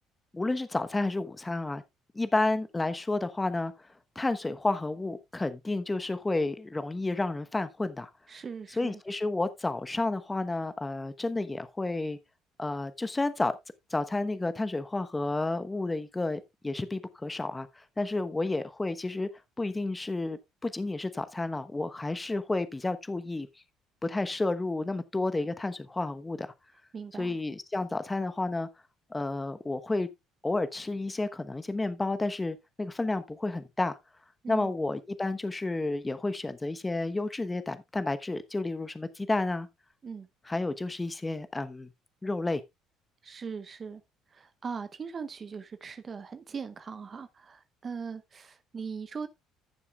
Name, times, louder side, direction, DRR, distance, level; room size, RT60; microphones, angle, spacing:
voice 1, 0.3-1.8 2.1-3.7 4.1-8.1 8.8-12.2 12.6-13.5 13.9-17.7 18.0-19.3 19.6-23.5 24.0-26.5 27.2-28.7 29.1-30.1 30.4-34.0 34.5-39.7 40.5-41.9 42.2-42.6, left 2 dB, 20° left, 1.1 m, -31 dB
voice 2, 8.3-9.0 26.9-27.4 34.4-34.7 40.0-40.3 43.2-44.0 44.3-49.3, right 5 dB, 40° right, 0.8 m, -40 dB
15.5 x 6.9 x 2.4 m
hypercardioid pair, 65°, 0 cm